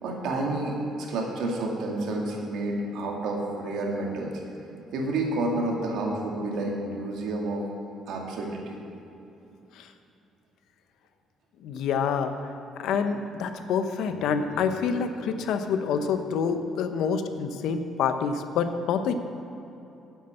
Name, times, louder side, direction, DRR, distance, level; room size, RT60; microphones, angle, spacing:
voice 1, 0.0-4.3 4.9-7.7 8.1-8.7, right 2 dB, 75° right, -1 dB, 2.2 m, -29 dB
voice 2, 11.6-12.3 12.8-19.1, left 6 dB, 70° left, 8 dB, 0.8 m, -27 dB
9.8 x 8.2 x 7.7 m, 2.8 s
cardioid pair, 170°, 0 cm